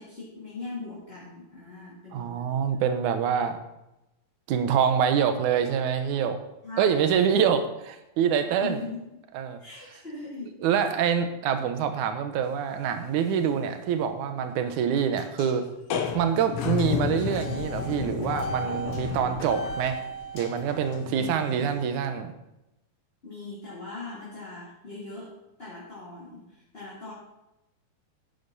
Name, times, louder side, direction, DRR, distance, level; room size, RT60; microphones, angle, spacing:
voice 1, 0.0-2.8 6.6-7.4 8.6-9.2 9.6-10.9 21.0-21.7 23.2-27.1, left 3 dB, 20° left, -8 dB, 3.1 m, -40 dB
voice 2, 2.1-3.6 4.5-6.4 6.8-7.6 7.9-8.8 9.3-9.6 10.6-15.7 16.1-20.0 20.3-22.3, right 7 dB, 75° right, 8 dB, 2.4 m, -25 dB
sound 1, 12.6-12.9 13.2-13.3 13.7-13.8 15.2-15.6 15.8-21.9, left 6 dB, 65° left, 1.5 m, -32 dB
12.0 x 10.0 x 4.2 m, 0.92 s
omnidirectional pair, 3.6 m